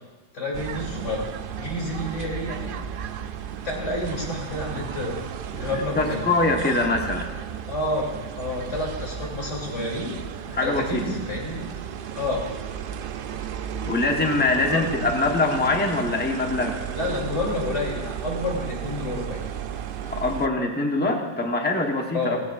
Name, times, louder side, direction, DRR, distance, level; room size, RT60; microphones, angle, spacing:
voice 1, 0.3-1.2 1.5-2.8 3.6-5.2 5.5-6.2 7.7-10.2 10.5-11.7 12.1-12.6 14.6-14.9 16.9-19.4 22.1-22.4, left 2 dB, 85° left, -2 dB, 3.3 m, -29 dB
sound 1, 0.5-20.5, right 9 dB, 60° right, 0.6 m, -34 dB
voice 2, 5.6-7.3 10.5-11.0 13.8-16.8 20.1-22.4, left 2 dB, 10° left, 2 dB, 1.0 m, -23 dB
16.5 x 15.5 x 2.5 m, 1.2 s
omnidirectional pair, 1.2 m